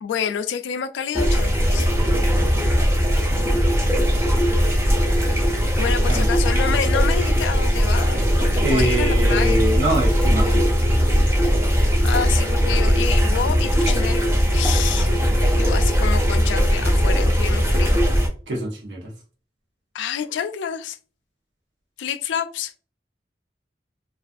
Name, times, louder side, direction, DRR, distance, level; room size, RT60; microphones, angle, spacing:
voice 1, 0.0-1.9 5.8-9.6 12.0-15.1 15.6-18.0 19.9-21.0 22.0-22.7, left 8 dB, 90° left, 0.3 m, -28 dB
sound 1, 1.2-18.3, equal, 15° right, 0.4 m, -19 dB
voice 2, 8.6-11.3 18.5-19.1, right 1 dB, 90° right, 0.7 m, -25 dB
2.4 x 2.3 x 2.5 m
head